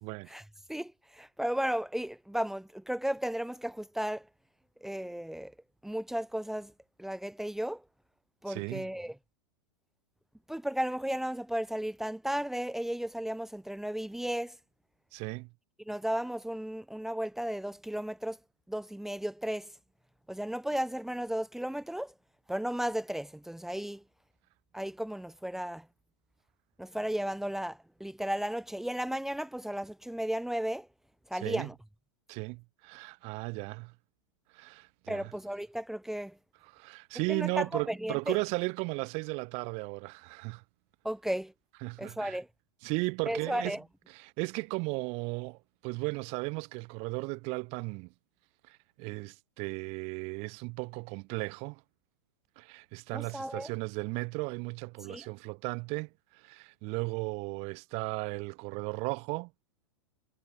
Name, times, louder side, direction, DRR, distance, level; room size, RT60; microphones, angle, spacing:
voice 1, 0.7-4.3 4.8-5.5 5.8-6.7 7.0-7.8 8.4-9.1 10.5-14.6 15.8-18.4 18.7-19.7 20.3-22.1 22.5-24.0 24.7-25.9 26.8-30.9 31.3-31.7 35.1-36.4 37.3-38.4 41.0-41.5 42.0-42.5 43.2-43.8 53.1-53.7 55.1-55.3, equal, ahead, 1.7 m, -34 dB
voice 2, 8.5-8.9 15.1-15.5 31.3-31.7 32.3-33.9 34.5-35.3 36.7-40.6 41.8-42.4 42.8-43.8 44.1-48.1 48.7-51.8 52.6-59.5, right 30 dB, 40° right, 0.9 m, -36 dB
figure-of-eight pair, 100°, 16 cm